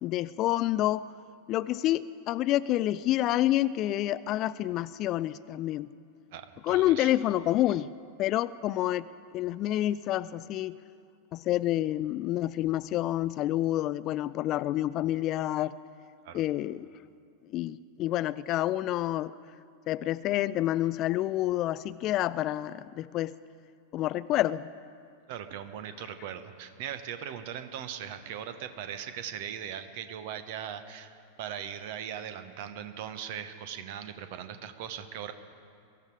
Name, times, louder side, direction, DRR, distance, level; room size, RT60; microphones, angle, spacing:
voice 1, 0.0-1.0 1.5-5.9 6.6-7.9 8.2-9.1 9.3-10.7 11.3-15.7 16.3-16.9 17.5-19.3 19.9-23.3 23.9-24.7, left 14 dB, 35° left, 17 dB, 0.3 m, -28 dB
voice 2, 6.3-7.1 16.2-16.4 25.3-35.3, right 9 dB, 50° right, 10 dB, 1.1 m, -39 dB
22.5 x 13.0 x 4.8 m, 2.4 s
figure-of-eight pair, 90°, 0 cm